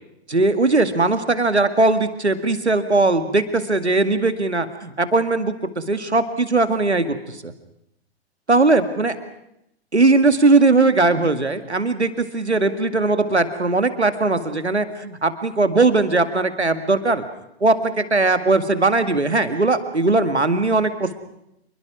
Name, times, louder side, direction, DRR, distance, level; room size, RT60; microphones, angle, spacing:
voice 1, 0.3-7.5 8.5-9.1 9.9-17.2 17.6-21.1, right 3 dB, 90° right, 10 dB, 2.1 m, -19 dB
27.5 x 22.0 x 6.1 m, 0.82 s
figure-of-eight pair, 110°, 33 cm